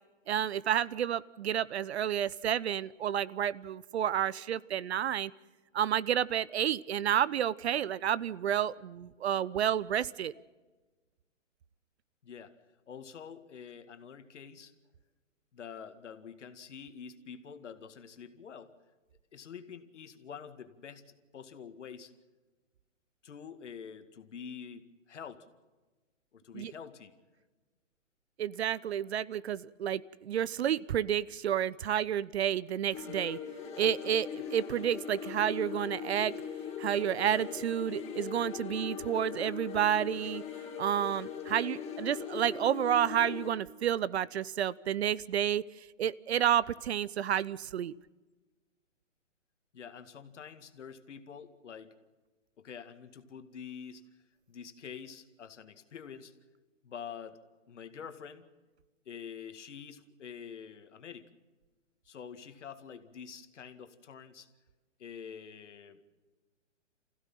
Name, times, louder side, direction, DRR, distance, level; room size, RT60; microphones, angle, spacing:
voice 1, 0.3-5.3 5.7-10.3 26.5-26.7 28.4-33.4 33.7-36.3 36.8-40.4 40.8-45.6 46.0-47.9, right 10 dB, 60° right, 20 dB, 0.7 m, -30 dB
voice 2, 12.2-12.6 12.9-14.7 15.5-18.7 19.3-22.1 23.2-25.5 26.3-27.1 49.7-51.9 52.6-54.0 54.5-56.3 56.8-57.4 57.7-58.5 59.1-61.3 62.1-64.5 65.0-66.0, left 7 dB, 65° left, 9 dB, 2.2 m, -47 dB
sound 1, 32.9-43.5, left 7 dB, 15° left, 4.0 m, -40 dB
26.0 x 16.0 x 7.5 m, 1.2 s
hypercardioid pair, 135°, 38 cm